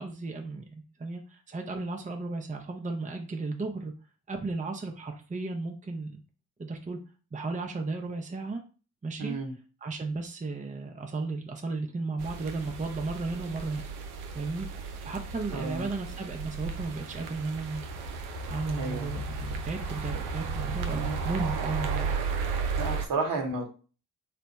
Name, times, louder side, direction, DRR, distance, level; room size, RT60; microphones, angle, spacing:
voice 1, 0.0-3.9 4.3-6.2 6.6-7.0 7.3-8.6 9.0-9.4 9.8-13.8 14.3-14.7 15.0-17.8 18.5-22.1, right 3 dB, 20° right, 4 dB, 0.7 m, -34 dB
voice 2, 9.2-9.5 15.5-15.8 18.8-19.1 20.9-21.1 22.8-23.7, right 3 dB, 60° right, 3 dB, 1.2 m, -32 dB
sound 1, 12.2-23.1, right 5 dB, 90° right, 0.6 m, -34 dB
3.3 x 2.2 x 4.1 m, 0.36 s
hypercardioid pair, 45°, 38 cm